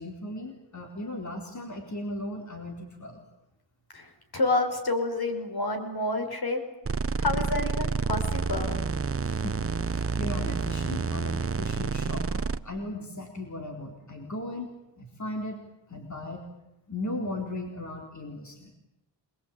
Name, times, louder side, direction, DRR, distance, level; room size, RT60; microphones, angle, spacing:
voice 1, 0.0-3.2 9.2-15.6 15.9-16.4 16.9-18.7, left 1 dB, 40° left, 2 dB, 4.1 m, -37 dB
voice 2, 3.9-6.6 7.2-8.8, left 2 dB, 60° left, 5 dB, 5.6 m, -29 dB
sound 1, 6.9-12.6, right 4 dB, 30° right, 1.0 m, -29 dB
27.0 x 21.5 x 8.6 m, 0.93 s
wide cardioid pair, 70°, 44 cm